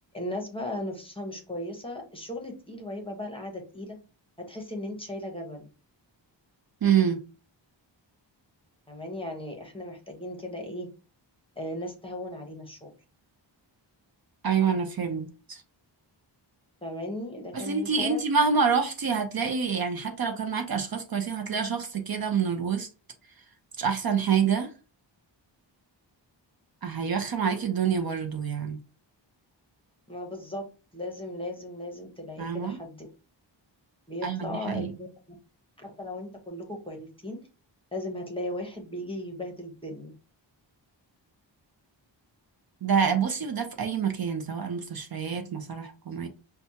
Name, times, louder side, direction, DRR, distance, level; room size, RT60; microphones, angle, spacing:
voice 1, 0.1-4.0 4.4-5.7 8.9-10.9 11.6-12.9 16.8-18.2 30.1-30.7 30.9-33.1 34.1-35.4 35.8-37.4 37.9-40.1, left 1 dB, 10° left, 0.9 m, -37 dB
voice 2, 6.8-7.2 14.4-15.6 17.5-22.9 23.8-24.7 26.8-28.8 32.4-32.8 34.2-34.9 42.8-46.3, right 6 dB, 50° right, 0.6 m, -27 dB
5.9 x 2.3 x 2.8 m
wide cardioid pair, 170°, 45 cm